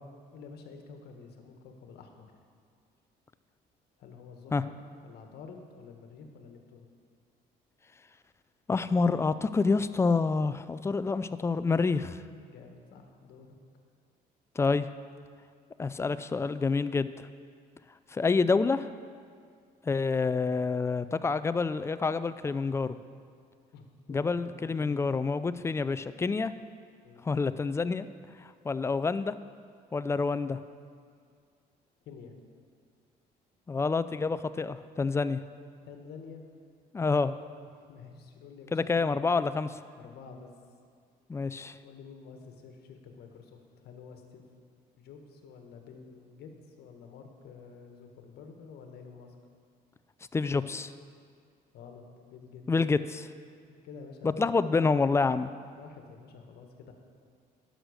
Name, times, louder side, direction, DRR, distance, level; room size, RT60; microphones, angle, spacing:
voice 1, 0.3-2.3 4.0-4.7 5.0-6.9 12.5-13.6 23.7-25.1 27.0-27.3 32.0-32.3 35.8-36.5 37.9-39.2 40.0-40.5 41.8-44.4 45.0-49.4 51.7-52.6 53.8-54.5 55.7-56.9, left 5 dB, 70° left, 4 dB, 1.4 m, -49 dB
voice 2, 8.7-12.2 14.6-14.9 15.8-17.3 18.1-18.9 19.9-23.0 24.1-26.5 27.2-28.1 28.6-29.3 29.9-30.6 33.7-35.4 36.9-37.3 38.7-39.7 41.3-41.7 50.3-50.9 52.7-53.3 54.2-55.5, left 4 dB, 15° left, 13 dB, 0.3 m, -27 dB
11.0 x 6.3 x 6.5 m, 2.2 s
cardioid pair, 110°, 17 cm